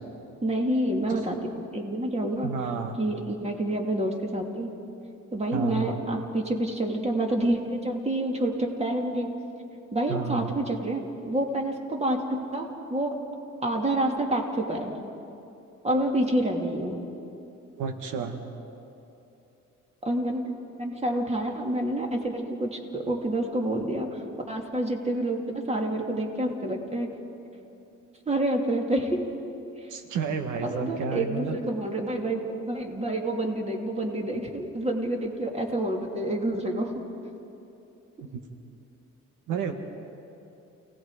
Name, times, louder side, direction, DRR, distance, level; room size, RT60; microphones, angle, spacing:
voice 1, 0.4-1.3 1.7-2.5 2.9-4.7 5.3-9.3 9.9-13.1 13.6-14.9 15.8-17.0 20.0-20.5 20.8-27.1 28.3-29.2 30.6-36.9, right 1 dB, 20° right, 2 dB, 2.7 m, -28 dB
voice 2, 2.4-3.0 5.5-6.0 10.1-10.5 17.8-18.4 29.9-31.6 38.3-38.4 39.5-39.7, right 6 dB, 85° right, 6 dB, 1.4 m, -31 dB
29.0 x 18.5 x 4.9 m, 2.9 s
cardioid pair, 90°, 30 cm